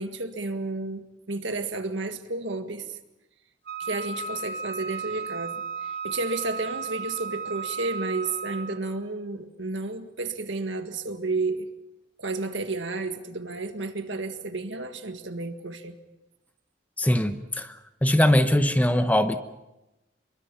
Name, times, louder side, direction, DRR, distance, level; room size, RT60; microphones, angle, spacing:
voice 1, 0.0-2.9 3.8-11.7 12.2-15.9, right 3 dB, 85° right, 7 dB, 1.8 m, -32 dB
Wind instrument woodwind instrument, 3.6-8.9, right 5 dB, 60° right, 4.9 m, -34 dB
voice 2, 17.0-19.4, left 1 dB, 10° left, 9 dB, 1.0 m, -22 dB
25.5 x 23.0 x 5.8 m, 0.98 s
head